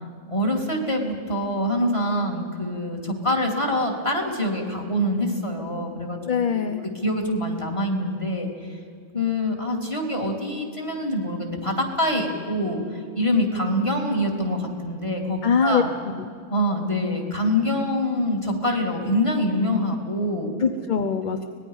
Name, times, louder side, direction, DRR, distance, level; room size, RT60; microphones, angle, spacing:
voice 1, 0.3-6.2 6.5-6.7 7.0-8.8 9.1-15.9 16.5-20.5 21.3-21.4, left 1 dB, 25° left, 2 dB, 2.7 m, -25 dB
voice 2, 6.2-6.8 15.4-15.8 20.6-21.4, left 6 dB, 45° left, 7 dB, 0.8 m, -22 dB
24.5 x 19.5 x 5.5 m, 2.2 s
omnidirectional pair, 1.3 m